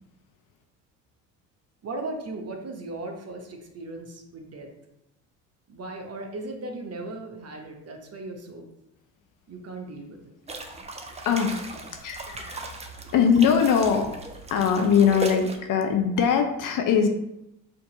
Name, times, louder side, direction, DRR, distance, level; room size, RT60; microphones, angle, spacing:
voice 1, 1.8-4.7 5.7-8.7 9.5-10.3, right 2 dB, 30° right, 3 dB, 0.9 m, -37 dB
sound 1, 10.5-15.6, right 2 dB, 15° right, 0.5 m, -37 dB
voice 2, 11.2-11.7 12.0-12.6 13.1-14.2 14.5-17.1, left 7 dB, 45° left, 5 dB, 0.7 m, -21 dB
4.3 x 2.8 x 3.9 m, 0.87 s
hypercardioid pair, 65°, 48 cm